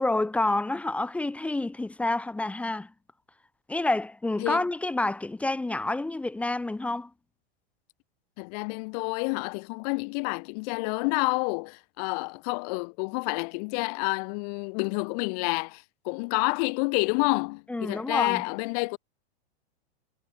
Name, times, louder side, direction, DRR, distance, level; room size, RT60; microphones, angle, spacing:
voice 1, 0.0-2.9 3.7-7.1 17.7-18.4, left 2 dB, 5° left, 1.9 m, -28 dB
voice 2, 8.4-19.0, left 33 dB, 35° left, 3.3 m, -29 dB
supercardioid pair, 170°, 33 cm